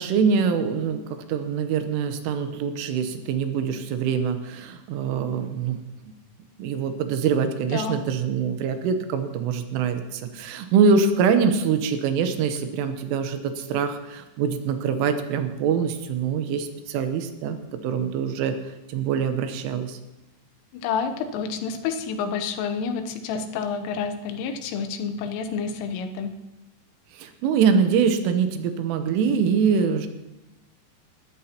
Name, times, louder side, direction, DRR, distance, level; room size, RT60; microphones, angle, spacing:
voice 1, 0.0-5.8 6.6-18.6 18.9-20.0 27.1-30.1, right 6 dB, 85° right, 8 dB, 3.5 m, -24 dB
voice 2, 7.6-8.0 20.7-26.4, left 6 dB, 90° left, 7 dB, 3.5 m, -29 dB
21.0 x 13.0 x 2.9 m, 0.96 s
omnidirectional pair, 5.6 m